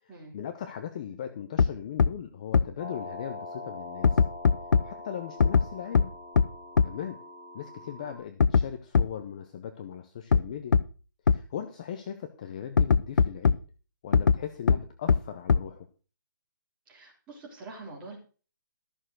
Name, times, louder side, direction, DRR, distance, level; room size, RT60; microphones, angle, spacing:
voice 1, 0.0-4.2 4.8-6.1 6.8-7.2 7.5-10.8 11.3-13.6 14.0-15.9, left 9 dB, 20° left, 8 dB, 0.7 m, -38 dB
sound 1, 1.6-1.7 2.0-2.1 2.5-2.6 4.0-4.8 5.4-5.6 5.9-6.0 6.4-6.5 6.8-6.9 8.4-8.6 8.9-9.0 10.3-10.4 10.7-10.8 11.3-11.4 12.8-13.5 14.1-14.4 14.7-14.8 15.1-15.2 15.5-15.6, left 6 dB, 65° left, 0.7 m, -19 dB
sound 2, 2.8-8.2, left 2 dB, 45° left, 7.2 m, -43 dB
voice 2, 16.9-18.2, right 3 dB, 10° right, -3 dB, 3.4 m, -45 dB
14.0 x 6.8 x 6.2 m, 0.37 s
hypercardioid pair, 175°, 11 cm